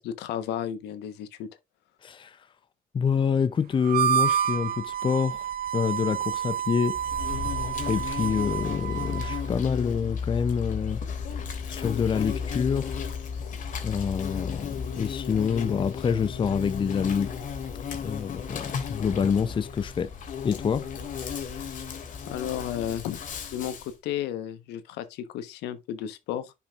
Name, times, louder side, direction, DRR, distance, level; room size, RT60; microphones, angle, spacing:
voice 1, 0.0-1.5 22.3-23.2 23.5-26.5, left 10 dB, 85° left, 1.2 m, -33 dB
voice 2, 2.9-5.4 5.7-6.9 7.9-11.0 11.7-13.0 13.8-17.3 18.0-20.1 20.4-20.8, left 6 dB, 30° left, 0.6 m, -27 dB
Harmonica, 3.8-9.5, right 9 dB, 60° right, 1.0 m, -29 dB
Insect, 6.9-23.9, left 6 dB, 50° left, 2.4 m, -34 dB
10.5 x 5.6 x 2.5 m
cardioid pair, 110°, 17 cm